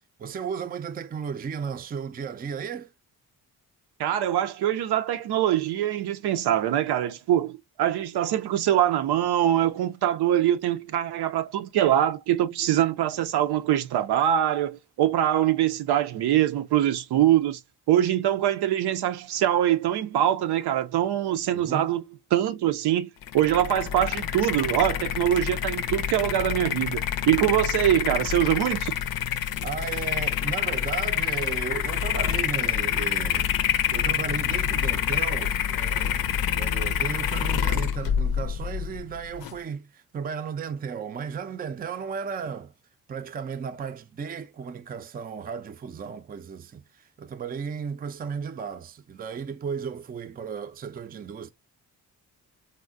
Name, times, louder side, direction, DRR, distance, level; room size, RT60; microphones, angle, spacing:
voice 1, 0.2-2.9 21.5-21.9 29.6-33.5 33.9-42.7 43.1-51.5, right 6 dB, 25° right, 0.4 m, -35 dB
voice 2, 4.0-17.6 17.9-22.0 22.3-28.9, right 11 dB, 85° right, 0.6 m, -23 dB
sound 1, 23.2-39.6, left 9 dB, 65° left, 0.5 m, -27 dB
3.6 x 2.1 x 2.5 m
cardioid pair, 100°, 38 cm